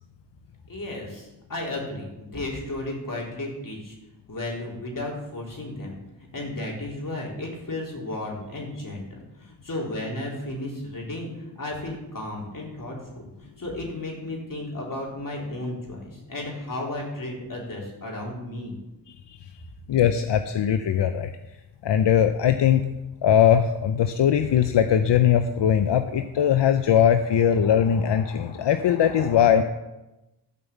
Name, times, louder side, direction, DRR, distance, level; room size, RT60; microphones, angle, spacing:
voice 1, 0.7-4.0 4.3-6.0 6.3-11.3 11.6-18.7, left 1 dB, 50° left, -2 dB, 3.6 m, -34 dB
voice 2, 19.9-21.3 21.8-22.8 23.2-29.6, left 9 dB, 85° left, 9 dB, 0.6 m, -20 dB
12.0 x 5.5 x 7.3 m, 1.0 s
cardioid pair, 60°, 41 cm